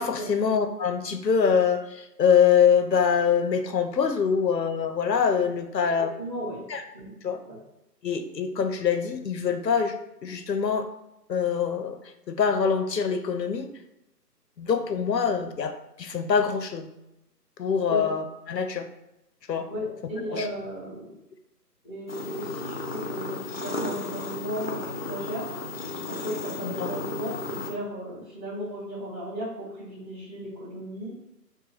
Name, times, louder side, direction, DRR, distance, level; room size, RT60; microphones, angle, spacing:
voice 1, 0.0-6.1 6.7-6.8 7.2-7.4 8.0-9.9 10.2-10.9 11.3-13.7 14.6-15.7 16.0-16.9 17.6-18.9 19.5-19.7 20.3-20.5 26.6-26.9, left 7 dB, 80° left, 7 dB, 0.7 m, -24 dB
voice 2, 6.0-6.6 6.9-7.1 7.5-7.6 17.8-18.0 19.7-21.2 21.8-25.4 26.1-31.1, equal, 10° right, -12 dB, 1.2 m, -35 dB
sound 1, 22.1-27.7, left 2 dB, 40° left, 0.5 m, -34 dB
3.0 x 2.2 x 4.0 m, 0.90 s
figure-of-eight pair, 150°, 49 cm